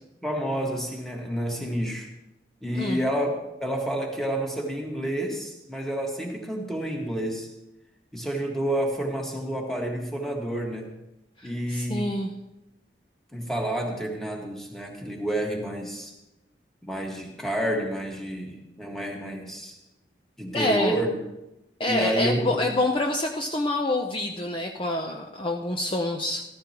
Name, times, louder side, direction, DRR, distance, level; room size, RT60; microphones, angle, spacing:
voice 1, 0.2-2.1 2.6-3.3 3.6-7.5 8.1-10.9 11.4-12.1 13.3-16.1 16.8-19.8 20.4-21.2 21.9-22.6, right 1 dB, ahead, 0 dB, 1.6 m, -29 dB
voice 2, 11.4-12.3 20.5-21.0 21.8-26.4, left 1 dB, 30° left, 2 dB, 0.6 m, -27 dB
14.0 x 14.0 x 3.0 m, 0.95 s
head